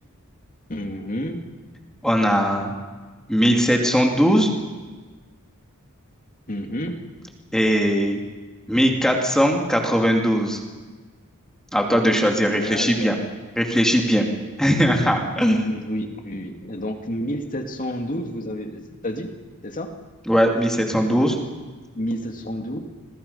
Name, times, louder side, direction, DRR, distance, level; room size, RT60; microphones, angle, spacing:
voice 1, 0.7-1.4 6.5-7.0 12.5-13.1 15.4-19.3 19.6-19.9 21.9-22.8, equal, 40° left, 4 dB, 2.5 m, -30 dB
voice 2, 2.0-2.8 3.3-4.5 7.5-8.2 8.7-10.6 11.7-13.2 13.6-14.3 14.6-15.6 20.3-21.4, equal, 5° left, 1 dB, 2.7 m, -19 dB
27.5 x 22.5 x 5.7 m, 1.3 s
head